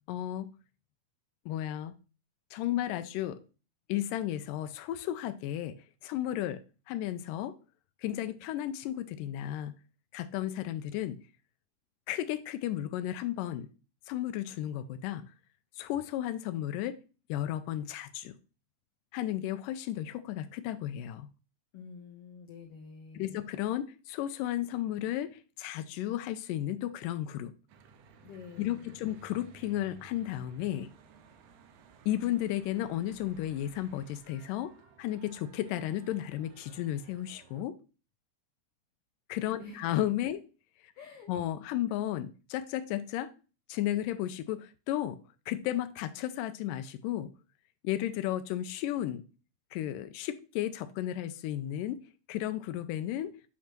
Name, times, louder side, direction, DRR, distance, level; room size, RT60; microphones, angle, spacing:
voice 1, 0.1-0.5 1.5-1.9 2.5-3.4 3.9-5.8 6.0-6.6 6.9-7.6 8.0-9.7 10.1-11.2 12.1-13.7 14.1-15.2 15.7-17.0 17.3-18.3 19.1-21.3 23.1-27.5 28.6-30.9 32.1-34.7 35.0-37.8 39.3-40.4 41.3-43.3 43.7-45.2 45.5-47.3 47.8-49.2 49.7-52.0 52.3-53.4, left 12 dB, 90° left, 10 dB, 2.2 m, -33 dB
voice 2, 21.7-23.5 28.2-29.2 39.6-39.9 40.3-40.4 40.9-41.3, left 5 dB, 65° left, 3 dB, 1.5 m, -48 dB
Church bell / Traffic noise roadway noise, 27.7-37.6, right 6 dB, 75° right, 2.0 m, -57 dB
8.7 x 3.1 x 5.9 m, 0.34 s
omnidirectional pair, 3.8 m